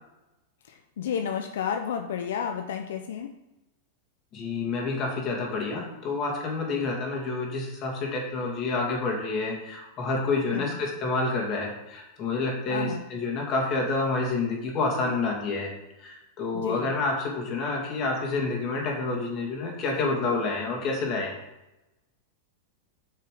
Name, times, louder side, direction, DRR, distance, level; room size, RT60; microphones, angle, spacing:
voice 1, 0.7-3.3 10.5-10.8 12.7-13.0 16.5-16.9, left 8 dB, 80° left, 5 dB, 0.7 m, -31 dB
voice 2, 4.3-15.7 16.0-21.4, left 3 dB, 35° left, 0 dB, 2.6 m, -28 dB
8.8 x 5.7 x 5.1 m, 0.95 s
supercardioid pair, 135°, 0 cm